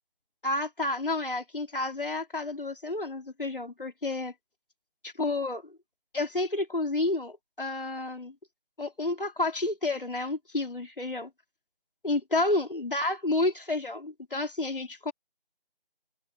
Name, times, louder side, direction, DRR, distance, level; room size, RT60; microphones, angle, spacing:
voice 1, 0.4-4.3 5.0-5.7 6.1-8.3 8.8-11.3 12.0-15.1, left 2 dB, 60° left, 3.7 m, -30 dB
figure-of-eight pair, 165°, 30 cm